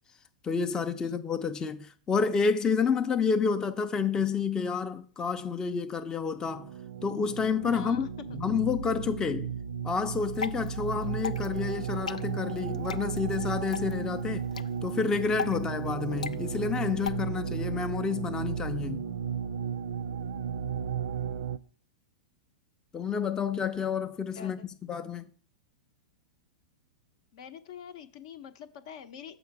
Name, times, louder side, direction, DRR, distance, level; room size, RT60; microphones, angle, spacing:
voice 1, 0.4-6.7 7.0-8.0 8.3-9.5 9.8-14.4 14.8-19.1 22.9-24.6 24.9-25.3, left 5 dB, 20° left, 0.5 m, -29 dB
sound 1, 6.3-21.6, right 7 dB, 65° right, 0.4 m, -34 dB
voice 2, 7.7-8.1 24.3-24.7 27.3-29.4, left 8 dB, 60° left, 0.7 m, -45 dB
Water / Drip, 10.1-17.1, left 6 dB, 85° left, 0.3 m, -40 dB
7.1 x 4.9 x 4.6 m
hypercardioid pair, 105°, 4 cm